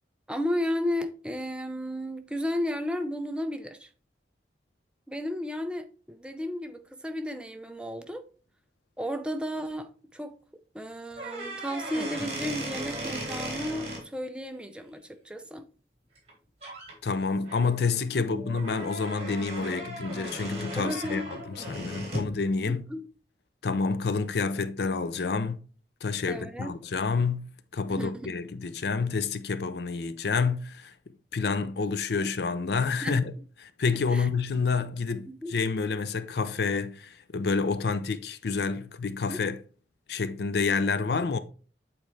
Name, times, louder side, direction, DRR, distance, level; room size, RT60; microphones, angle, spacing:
voice 1, 0.3-3.9 5.1-8.2 9.0-10.3 10.7-15.7 18.1-18.4 20.8-21.2 22.7-23.0 26.3-26.7 27.9-28.3 32.2-32.3 33.0-33.2 34.1-34.3 35.3-35.5 39.3-39.4, equal, 5° right, 0.5 m, -33 dB
sound 1, 11.1-14.0 16.2-16.3 16.6-16.9 17.4-22.3, right 1 dB, 35° right, 3.2 m, -37 dB
voice 2, 17.0-22.9 23.6-25.6 26.0-30.9 31.3-33.3 33.8-39.6 40.1-41.4, left 4 dB, 65° left, 0.5 m, -28 dB
8.5 x 4.2 x 3.2 m
head